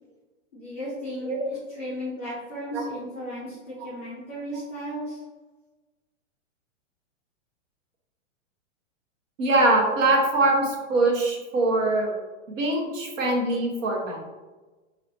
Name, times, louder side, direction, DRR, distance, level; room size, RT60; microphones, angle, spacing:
voice 1, 0.5-5.2, equal, 10° left, -11 dB, 0.4 m, -35 dB
voice 2, 9.4-12.1 12.5-14.2, right 2 dB, 75° right, 0 dB, 1.1 m, -23 dB
4.1 x 3.0 x 2.8 m, 1.2 s
supercardioid pair, 175°, 38 cm